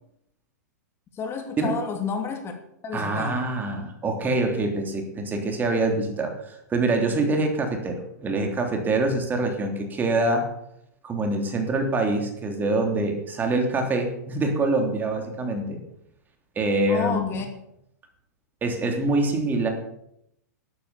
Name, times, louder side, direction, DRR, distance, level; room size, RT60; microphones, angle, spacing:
voice 1, 1.1-2.5 2.8-3.4 16.9-17.5, left 5 dB, 25° left, 4 dB, 2.7 m, -30 dB
voice 2, 2.9-10.5 11.0-15.8 16.5-17.4 18.6-19.7, right 2 dB, 20° right, 3 dB, 3.3 m, -25 dB
12.5 x 12.0 x 7.1 m, 0.78 s
hypercardioid pair, 120°, 9 cm